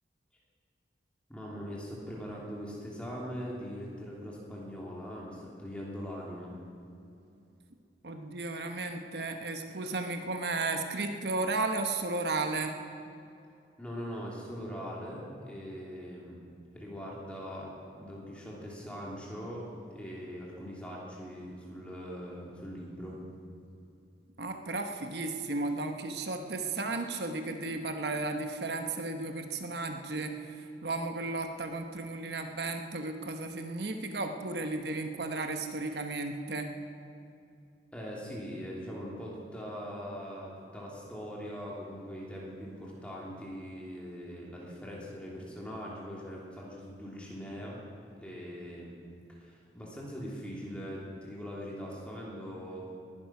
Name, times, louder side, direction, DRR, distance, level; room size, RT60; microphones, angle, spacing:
voice 1, 1.3-6.5 13.8-16.4 16.7-23.2 37.9-47.8 48.2-48.9 49.3-52.8, equal, 5° left, -4 dB, 3.1 m, -41 dB
voice 2, 8.0-12.7 24.4-36.7, right 3 dB, 70° right, 5 dB, 1.0 m, -34 dB
20.0 x 11.0 x 5.9 m, 2.6 s
head